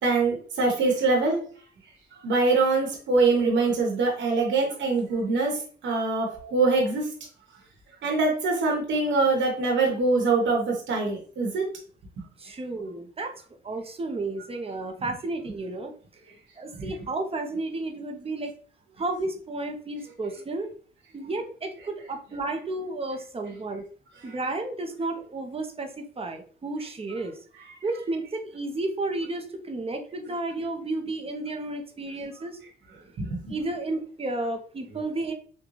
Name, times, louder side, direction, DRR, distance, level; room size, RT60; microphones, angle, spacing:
voice 1, 0.0-1.4 2.2-7.1 8.0-11.7 16.8-16.9 33.2-33.5, right 3 dB, 65° right, 0 dB, 1.1 m, -24 dB
voice 2, 12.4-13.3 13.6-15.9 16.6-18.5 19.0-20.7 21.1-23.9 24.2-27.3 27.8-32.6 33.5-35.3, right 2 dB, 30° right, 5 dB, 0.6 m, -32 dB
3.8 x 2.3 x 3.1 m, 0.44 s
cardioid pair, 90°, 20 cm